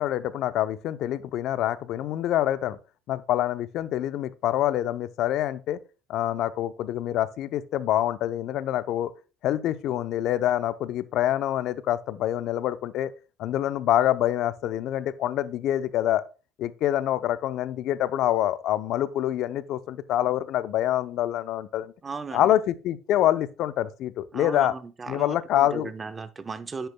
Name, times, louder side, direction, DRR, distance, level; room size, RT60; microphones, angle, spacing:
voice 1, 0.0-2.8 3.1-5.8 6.1-9.1 9.4-13.1 13.4-16.2 16.6-21.9 22.3-24.7 25.1-25.9, left 12 dB, 65° left, 0.6 m, -26 dB
voice 2, 22.0-22.5 24.3-26.9, right 4 dB, 30° right, 0.9 m, -36 dB
10.0 x 8.0 x 2.2 m
hypercardioid pair, 70°, 0 cm